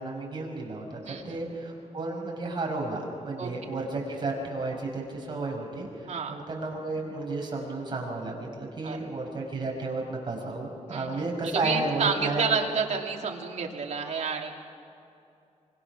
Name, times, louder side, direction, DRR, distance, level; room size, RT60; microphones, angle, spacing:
voice 1, 0.0-12.5, right 2 dB, 35° right, -1 dB, 5.5 m, -32 dB
voice 2, 1.0-1.4 3.4-3.5 6.1-6.4 8.8-9.1 10.9-11.2 11.5-14.5, right 5 dB, 60° right, 0 dB, 2.8 m, -30 dB
26.0 x 25.0 x 6.1 m, 2.7 s
wide cardioid pair, 155°, 13 cm